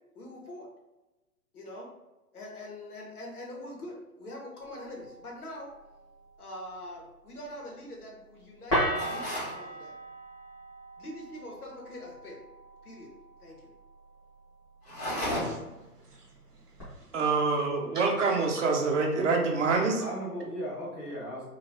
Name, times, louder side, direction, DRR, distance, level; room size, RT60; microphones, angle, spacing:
voice 1, 0.1-0.7 1.5-1.9 2.3-5.7 6.4-9.9 11.0-12.4 12.8-13.1 13.4-13.7, left 1 dB, 70° left, -1 dB, 1.1 m, -43 dB
sound 1, 4.6-16.8, equal, 10° left, 0.5 m, -39 dB
sound 2, 8.9-9.6 14.8-15.8, left 1 dB, 45° left, 1.3 m, -33 dB
voice 2, 14.9-17.2 17.9-18.1 20.0-20.1, right 2 dB, 85° right, 1 dB, 0.9 m, -48 dB
voice 3, 17.1-20.0, right 4 dB, 50° right, 2 dB, 0.7 m, -26 dB
voice 4, 18.6-19.5 20.0-21.5, right 1 dB, 25° left, -6 dB, 1.1 m, -37 dB
3.1 x 2.4 x 2.7 m, 1.1 s
figure-of-eight pair, 115°, 46 cm